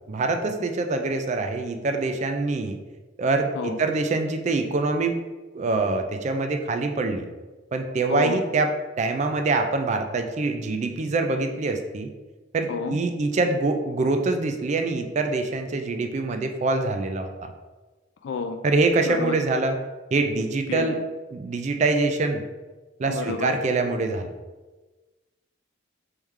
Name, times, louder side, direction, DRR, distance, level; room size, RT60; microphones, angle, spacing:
voice 1, 0.1-2.8 3.2-5.2 5.5-7.2 7.7-8.7 9.0-12.1 12.5-17.5 18.6-19.8 20.1-21.0 21.3-22.4 23.0-24.3, right 3 dB, 35° right, 5 dB, 0.3 m, -24 dB
voice 2, 18.2-18.6 19.0-19.4 20.7-21.0 23.1-23.6, left 5 dB, 60° left, 6 dB, 0.3 m, -30 dB
3.5 x 3.1 x 3.2 m, 1.2 s
head